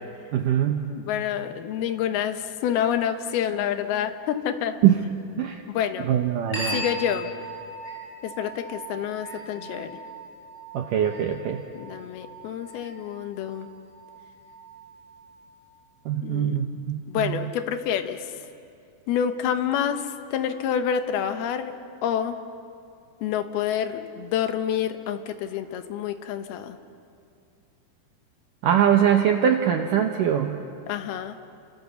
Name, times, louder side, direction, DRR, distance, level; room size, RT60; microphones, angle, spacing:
voice 1, 0.3-0.9 4.8-5.0 5.4-5.6 6.0-6.8 10.7-11.6 16.1-17.5 28.6-30.6, right 9 dB, 75° right, 4 dB, 2.0 m, -22 dB
voice 2, 0.9-4.8 5.7-6.1 6.7-7.3 8.2-10.0 11.7-13.7 16.2-16.6 17.1-18.3 19.1-21.7 22.0-22.4 23.2-26.8 30.9-31.4, left 9 dB, 70° left, 8 dB, 2.8 m, -28 dB
sound 1, 6.5-15.6, right 1 dB, 15° left, 7.8 m, -39 dB
30.0 x 26.5 x 7.0 m, 2.5 s
omnidirectional pair, 5.0 m